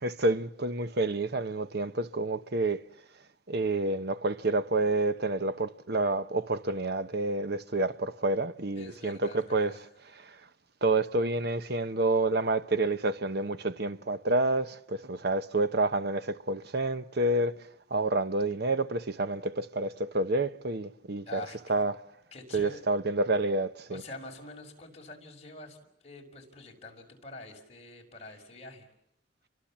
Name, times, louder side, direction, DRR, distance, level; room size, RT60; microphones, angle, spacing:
voice 1, 0.0-2.8 3.5-9.7 10.0-10.4 10.8-22.0 22.5-24.0, right 2 dB, 55° right, 1.1 m, -29 dB
voice 2, 8.8-9.8 21.3-21.6 22.3-22.8 23.9-25.8 26.0-28.9, left 2 dB, 35° left, 5.7 m, -46 dB
29.5 x 23.5 x 7.4 m
head